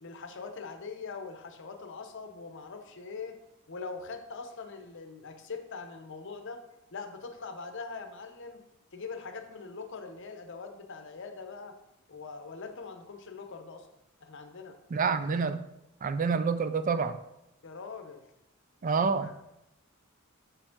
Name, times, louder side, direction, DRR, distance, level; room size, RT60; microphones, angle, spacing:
voice 1, 0.0-3.4 3.7-6.6 6.9-8.6 8.9-11.8 12.1-13.9 14.2-14.8 17.6-18.2 19.2-19.5, left 4 dB, 55° left, 6 dB, 0.7 m, -42 dB
voice 2, 14.9-15.6 16.0-17.2 18.8-19.3, right 5 dB, 35° right, 11 dB, 0.3 m, -28 dB
6.5 x 5.1 x 3.6 m, 0.86 s
head